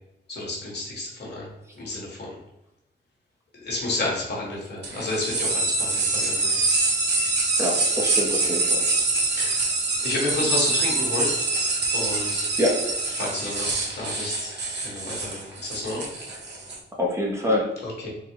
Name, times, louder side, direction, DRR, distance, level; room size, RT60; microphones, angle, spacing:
voice 1, 0.3-1.5 1.8-2.3 3.6-6.6 9.3-9.6 10.0-11.3 11.9-12.5 13.2-14.5 14.8-16.1 18.0-18.1, left 2 dB, 60° left, -2 dB, 1.3 m, -30 dB
sound 1, 4.8-16.8, right 3 dB, 65° right, 0.9 m, -25 dB
voice 2, 7.6-8.9 12.6-12.9 16.3-16.4 17.0-17.8, left 1 dB, 15° right, -2 dB, 0.6 m, -25 dB
3.9 x 2.1 x 4.4 m, 0.92 s
wide cardioid pair, 160°, 19 cm